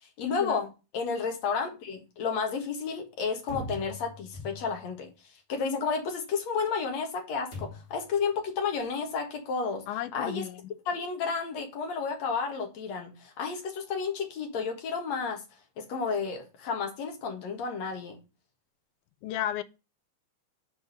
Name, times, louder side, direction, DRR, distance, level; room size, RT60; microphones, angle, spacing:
voice 1, 0.2-0.7 0.9-5.1 5.5-9.8 10.1-10.5 10.9-15.4 15.8-18.2, left 5 dB, 65° left, 2.8 m, -31 dB
sound 1, 3.5-5.0 7.5-8.1, left 2 dB, 30° left, 3.5 m, -41 dB
voice 2, 9.9-10.7 19.2-19.6, left 12 dB, 85° left, 2.1 m, -33 dB
6.3 x 4.8 x 6.3 m
omnidirectional pair, 3.5 m